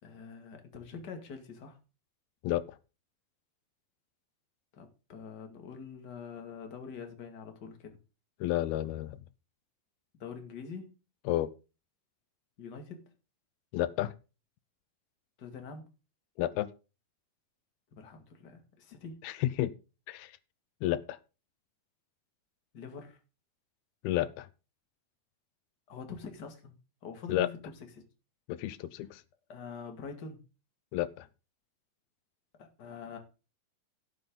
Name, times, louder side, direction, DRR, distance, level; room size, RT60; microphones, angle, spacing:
voice 1, 0.0-1.8 4.7-8.0 10.1-10.9 12.6-13.1 15.4-15.9 17.9-19.2 22.7-23.2 25.9-27.6 27.9-28.0 29.5-30.4 32.6-33.2, left 5 dB, 35° left, 2.3 m, -45 dB
voice 2, 8.4-9.2 11.3-11.5 13.7-14.1 16.4-16.7 19.2-19.7 20.1-20.3 20.8-21.2 24.0-24.5 27.3-27.5 28.5-29.2 30.9-31.3, left 14 dB, 90° left, 2.7 m, -31 dB
16.0 x 7.8 x 3.9 m
omnidirectional pair, 4.3 m